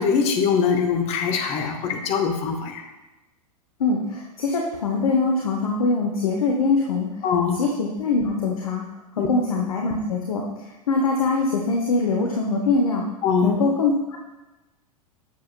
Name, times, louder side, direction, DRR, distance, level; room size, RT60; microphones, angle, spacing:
voice 1, 0.0-2.8 7.2-7.6 9.2-9.3 13.2-13.5, left 6 dB, 30° left, 4 dB, 1.0 m, -22 dB
voice 2, 3.8-7.1 7.5-8.8 9.2-13.0 13.4-14.2, left 3 dB, 65° left, 0 dB, 0.9 m, -23 dB
8.1 x 6.9 x 2.2 m, 1.1 s
figure-of-eight pair, 95°, 20 cm